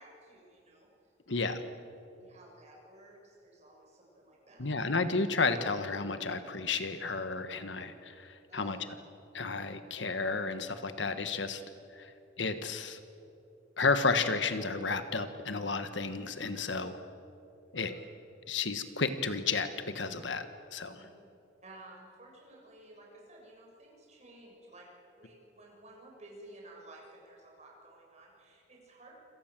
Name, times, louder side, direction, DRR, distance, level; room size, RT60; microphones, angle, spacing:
voice 1, 0.0-1.5 2.2-4.8 8.5-8.8 17.7-18.1 20.9-21.0 21.6-29.2, right 1 dB, 40° right, -1 dB, 7.1 m, -54 dB
voice 2, 1.3-1.6 4.6-8.8 9.3-11.6 11.9-12.1 12.4-13.0 13.8-17.0 17.7-17.9 18.5-21.0, left 4 dB, 80° left, 10 dB, 1.5 m, -32 dB
27.5 x 27.0 x 7.7 m, 2.8 s
head